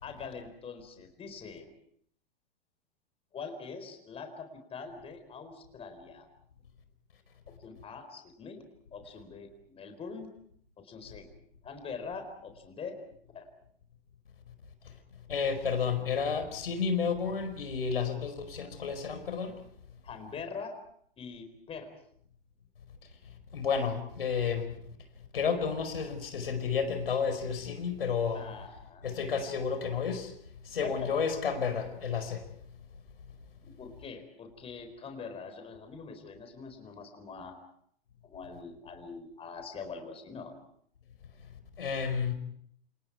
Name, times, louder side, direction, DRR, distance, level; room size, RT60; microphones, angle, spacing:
voice 1, 0.0-1.7 3.3-6.3 7.5-8.6 8.9-10.3 10.8-11.3 11.6-13.0 13.3-13.5 20.0-20.8 21.2-21.9 28.3-29.1 30.8-31.1 33.6-37.6 38.2-40.6, left 5 dB, 20° left, 4.3 m, -43 dB
voice 2, 15.3-19.5 23.5-24.7 25.3-28.5 29.0-30.3 30.7-32.4 41.8-42.3, left 6 dB, 75° left, 5.0 m, -31 dB
29.0 x 28.5 x 4.8 m
figure-of-eight pair, 110°, 29 cm